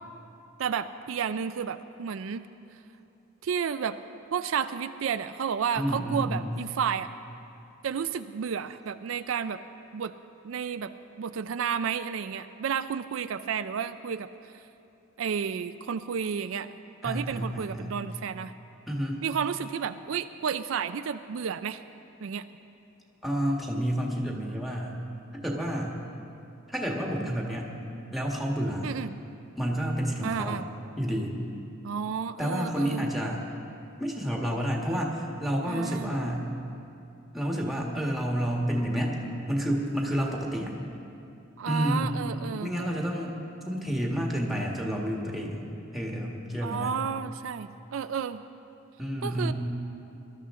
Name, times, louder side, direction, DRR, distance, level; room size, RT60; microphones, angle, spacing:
voice 1, 0.6-2.4 3.4-4.0 4.3-7.1 7.8-9.6 9.9-10.1 10.4-10.9 11.2-14.3 14.5-14.6 15.2-16.7 17.0-18.5 19.2-21.8 22.2-22.4 28.8-29.1 30.2-30.7 31.8-33.1 35.7-36.1 41.6-42.7 46.6-48.4 49.2-49.5, right 7 dB, 75° right, 11 dB, 0.4 m, -31 dB
voice 2, 5.7-6.5 17.0-18.0 18.9-19.2 23.2-25.0 25.3-26.0 26.7-27.7 28.1-28.9 29.6-30.6 31.0-31.3 32.4-33.4 34.0-36.5 37.3-39.2 39.5-40.7 41.7-42.2 42.6-43.4 43.6-45.6 45.9-47.0 49.0-49.5, equal, ahead, -1 dB, 1.5 m, -29 dB
21.0 x 12.5 x 3.7 m, 2.8 s
head